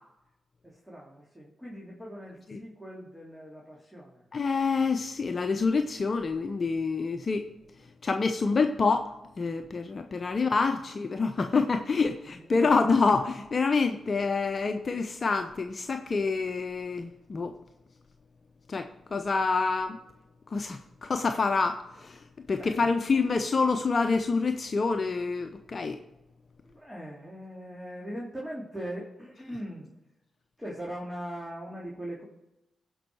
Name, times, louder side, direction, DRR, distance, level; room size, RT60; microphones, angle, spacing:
voice 1, 0.6-4.3 12.2-13.0 22.6-22.7 26.6-29.9 30.6-32.2, equal, 5° right, -4 dB, 3.1 m, -41 dB
voice 2, 4.3-7.5 8.0-9.1 9.4-17.5 18.7-20.0 20.5-22.2 22.5-26.0, left 4 dB, 50° left, 7 dB, 0.7 m, -27 dB
16.0 x 5.5 x 4.8 m, 0.93 s
supercardioid pair, 40°, 0 cm